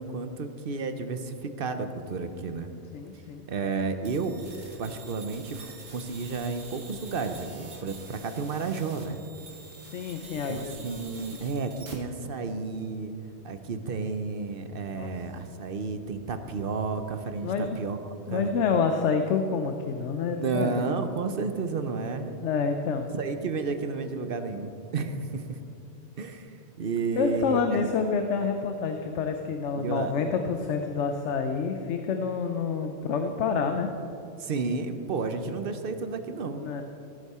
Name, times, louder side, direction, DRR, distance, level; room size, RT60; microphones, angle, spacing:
voice 1, 0.0-2.7 3.5-4.3 4.8-9.2 10.3-13.1 13.4-18.5 20.4-22.3 23.1-25.6 26.2-27.8 29.7-30.1 34.4-36.6, right 4 dB, 55° right, 8 dB, 0.9 m, -32 dB
voice 2, 2.9-3.4 9.9-10.8 14.9-15.1 17.4-17.8 18.3-20.8 22.4-23.1 27.2-33.9 36.6-36.8, left 5 dB, 85° left, 6 dB, 1.0 m, -28 dB
sound 1, 4.0-11.9, right 3 dB, 80° right, 2.1 m, -47 dB
17.5 x 8.2 x 4.3 m, 2.8 s
omnidirectional pair, 1.2 m